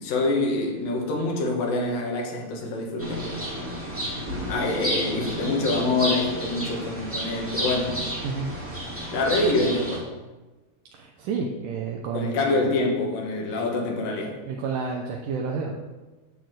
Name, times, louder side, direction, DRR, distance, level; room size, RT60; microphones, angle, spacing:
voice 1, 0.0-3.3 4.5-8.0 9.1-10.1 12.1-14.4, left 2 dB, 75° left, 1 dB, 3.3 m, -26 dB
sound 1, 3.0-10.0, equal, 5° right, 1.5 m, -31 dB
voice 2, 10.9-12.4 14.5-15.7, right 5 dB, 75° right, 0 dB, 2.2 m, -30 dB
10.5 x 4.5 x 7.7 m, 1.2 s
omnidirectional pair, 4.1 m